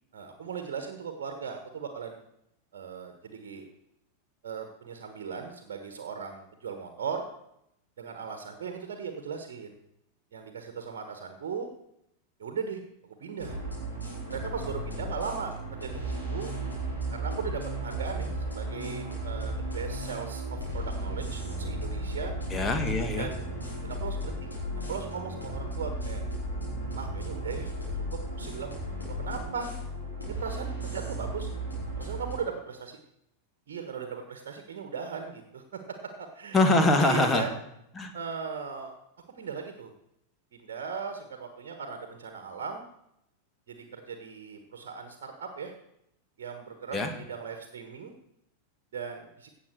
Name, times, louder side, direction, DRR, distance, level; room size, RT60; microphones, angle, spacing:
voice 1, 0.1-2.2 2.7-3.6 4.4-7.3 8.0-9.8 10.3-11.7 12.4-12.8 13.2-13.6 14.3-16.5 17.1-22.3 23.1-23.6 23.8-24.5 24.9-26.2 26.9-27.7 28.1-28.7 29.1-29.7 30.3-31.5 32.0-33.0 33.7-36.6 37.0-37.5 38.1-38.9 39.3-39.9 40.5-42.9 43.7-45.7 46.4-48.1 48.9-49.5, right 6 dB, 55° right, 6 dB, 1.4 m, -38 dB
sound 1, 13.4-32.3, right 1 dB, 85° left, 4.5 m, -35 dB
voice 2, 22.5-23.3 36.5-37.5 38.0-38.1 46.9-47.1, left 2 dB, 15° left, 4 dB, 1.8 m, -23 dB
16.5 x 7.2 x 4.6 m, 0.78 s
figure-of-eight pair, 90°, 0 cm